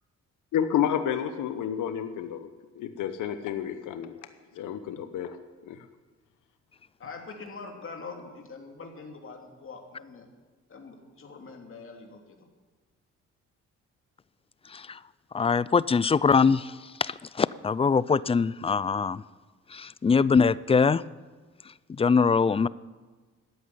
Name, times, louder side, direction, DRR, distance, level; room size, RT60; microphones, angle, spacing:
voice 1, 0.5-2.5 2.7-4.2 4.5-5.4 5.6-5.9, left 9 dB, 80° left, 9 dB, 1.0 m, -30 dB
voice 2, 7.0-10.3 10.7-12.5, left 4 dB, 45° left, 2 dB, 3.0 m, -43 dB
voice 3, 14.7-15.0 15.3-19.2 19.7-21.0 21.9-22.7, left 5 dB, 20° left, 20 dB, 0.4 m, -23 dB
13.5 x 8.6 x 9.7 m, 1.3 s
cardioid pair, 90°, 30 cm